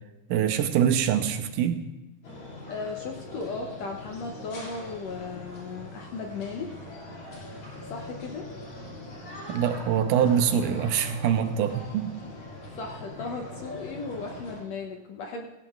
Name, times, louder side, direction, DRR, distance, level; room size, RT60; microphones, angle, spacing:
voice 1, 0.3-1.8 9.5-12.1, right 8 dB, 80° right, 8 dB, 2.1 m, -24 dB
sound 1, 2.2-14.6, left 2 dB, 45° left, 3.4 m, -42 dB
voice 2, 2.7-6.7 7.9-8.4 12.8-15.5, left 4 dB, 70° left, 2 dB, 1.7 m, -36 dB
16.5 x 16.0 x 2.4 m, 1.1 s
omnidirectional pair, 3.9 m